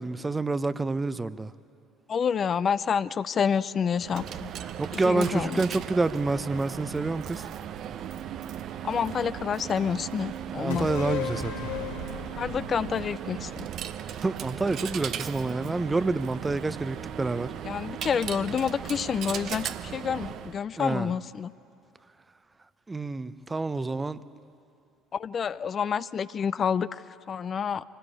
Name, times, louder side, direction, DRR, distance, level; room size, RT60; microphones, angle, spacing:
voice 1, 0.0-1.5 4.6-7.4 10.5-11.5 14.2-17.5 20.8-21.1 22.9-24.2, right 3 dB, 20° right, 15 dB, 0.7 m, -28 dB
voice 2, 2.1-4.5 4.9-5.6 8.8-10.9 12.4-13.7 17.6-21.5 25.1-27.8, left 7 dB, 40° left, 15 dB, 0.5 m, -28 dB
Coin (dropping), 4.0-20.6, right 9 dB, 55° right, 0.8 m, -37 dB
sound 1, 10.7-14.3 14.6-14.7, left 6 dB, 85° left, 2.0 m, -36 dB
24.5 x 18.5 x 8.6 m, 2.5 s
hypercardioid pair, 60°, 0 cm